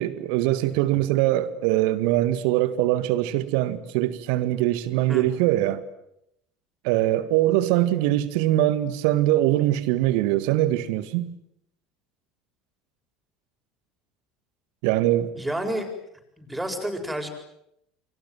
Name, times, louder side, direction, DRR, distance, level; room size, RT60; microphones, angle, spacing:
voice 1, 0.0-5.8 6.8-11.3 14.8-15.3, right 14 dB, 60° right, 1.8 m, -22 dB
voice 2, 15.3-15.9 16.4-17.3, right 1 dB, 10° right, 7.5 m, -29 dB
29.0 x 25.0 x 7.8 m
figure-of-eight pair, 70°, 0 cm